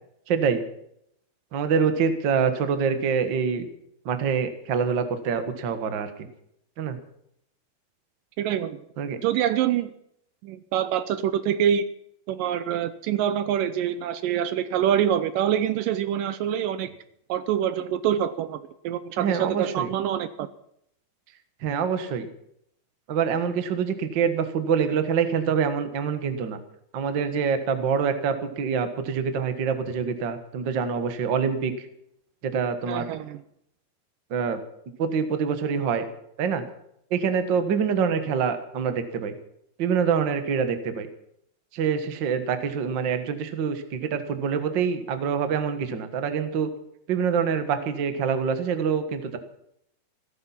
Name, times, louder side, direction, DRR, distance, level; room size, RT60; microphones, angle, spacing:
voice 1, 0.3-0.6 1.5-3.7 4.0-6.3 6.8-7.0 9.0-9.2 19.2-19.9 21.6-22.3 23.1-26.6 26.9-31.7 32.4-33.1 34.3-34.6 35.0-36.0 36.4-36.6 37.1-39.3 39.8-41.1 41.7-46.7 47.1-49.4, right 6 dB, 50° right, 9 dB, 1.5 m, -25 dB
voice 2, 8.4-8.8 9.2-9.9 10.4-11.9 12.3-16.9 17.3-20.5 32.9-33.4, right 10 dB, 80° right, 12 dB, 2.2 m, -25 dB
16.0 x 14.0 x 5.8 m, 0.73 s
omnidirectional pair, 4.1 m